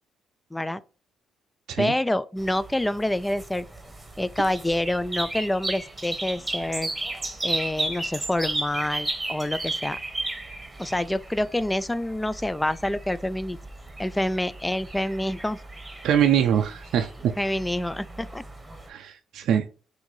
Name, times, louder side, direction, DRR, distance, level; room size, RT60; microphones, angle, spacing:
voice 1, 0.5-0.8 1.8-3.7 4.2-6.9 7.4-10.0 10.8-13.6 14.0-15.6 17.4-18.4, left 1 dB, 10° left, 0.3 m, -27 dB
sound 1, 2.4-18.9, right 2 dB, 15° right, 1.1 m, -35 dB
voice 2, 16.0-17.3 18.9-19.6, right 9 dB, 80° right, 0.4 m, -23 dB
5.9 x 2.7 x 3.1 m
cardioid pair, 90°, 0 cm